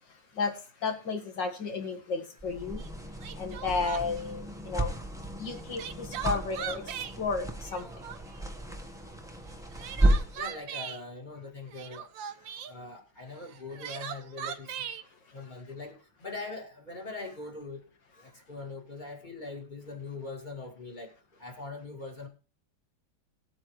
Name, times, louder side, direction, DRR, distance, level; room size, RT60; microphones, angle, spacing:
voice 1, 0.1-2.8 3.3-5.0 5.4-7.9, left 4 dB, 65° left, 2.4 m, -33 dB
sound 1, 2.4-10.5, right 1 dB, ahead, 1.0 m, -32 dB
Crying sobbing, 2.8-2.9 3.2-4.3 5.5-7.2 7.6-8.4 9.5-11.0 11.7-12.7 13.5-15.0, right 9 dB, 75° right, 1.6 m, -39 dB
voice 2, 10.3-12.1 12.6-14.9 15.3-17.8 18.1-21.1 21.4-22.3, left 3 dB, 25° left, 2.3 m, -42 dB
19.0 x 8.8 x 3.2 m
omnidirectional pair, 2.1 m